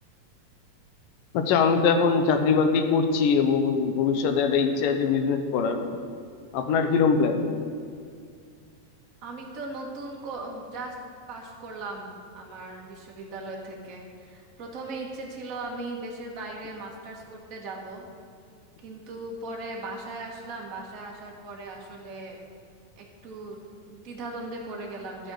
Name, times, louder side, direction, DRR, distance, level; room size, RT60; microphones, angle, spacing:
voice 1, 1.3-5.8 6.5-7.5, left 5 dB, 75° left, 6 dB, 2.4 m, -22 dB
voice 2, 9.2-11.0 11.3-18.0 18.8-22.4 23.0-23.6 23.8-25.3, right 2 dB, 50° right, -1 dB, 1.0 m, -38 dB
12.0 x 8.0 x 6.2 m, 2.2 s
omnidirectional pair, 4.1 m